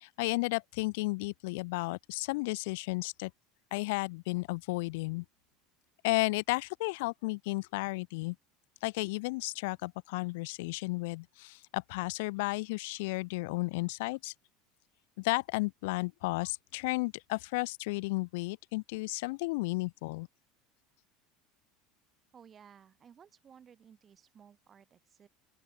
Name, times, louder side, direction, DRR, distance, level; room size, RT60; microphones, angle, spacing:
voice 1, 0.0-3.3 3.7-5.2 6.0-8.4 8.8-14.3 15.2-20.3, left 24 dB, 75° left, 0.4 m, -33 dB
voice 2, 22.3-25.3, right 8 dB, 30° right, 5.9 m, -57 dB
open air
supercardioid pair, 125°, 0 cm